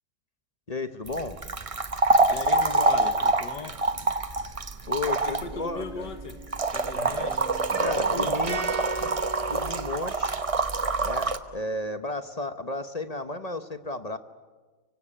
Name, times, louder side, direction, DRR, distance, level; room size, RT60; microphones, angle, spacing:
voice 1, 0.7-1.4 4.9-6.1 7.8-8.7 9.5-10.4 11.0-14.2, left 2 dB, 30° left, 10 dB, 0.8 m, -33 dB
sound 1, 1.1-11.4, right 3 dB, 25° right, 0.8 m, -26 dB
voice 2, 2.3-3.8 5.2-6.4 6.7-7.5 7.8-8.4, left 5 dB, 80° left, 9 dB, 2.3 m, -38 dB
sound 2, 5.5-6.6 6.9-10.5, right 2 dB, 70° right, 3.3 m, -37 dB
24.5 x 24.5 x 10.0 m, 1.4 s
omnidirectional pair, 1.8 m